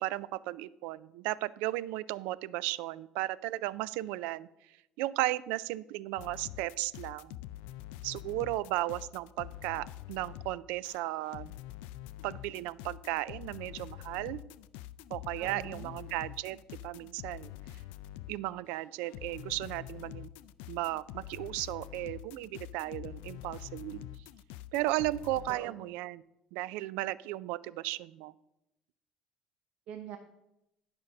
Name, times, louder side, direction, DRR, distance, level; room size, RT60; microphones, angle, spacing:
voice 1, 0.0-4.5 5.0-7.4 8.0-11.5 12.2-14.4 15.1-16.6 16.8-17.5 18.3-20.3 20.7-24.0 24.7-26.2 26.5-28.3, right 17 dB, 85° right, 20 dB, 0.3 m, -35 dB
sound 1, 6.2-18.4 18.7-25.5, left 13 dB, 85° left, 0.3 m, -46 dB
voice 2, 15.4-15.9 23.9-24.1 25.5-25.8 29.9-30.2, right 9 dB, 60° right, 7 dB, 0.7 m, -44 dB
11.5 x 5.3 x 5.3 m, 0.89 s
cardioid pair, 145°, 2 cm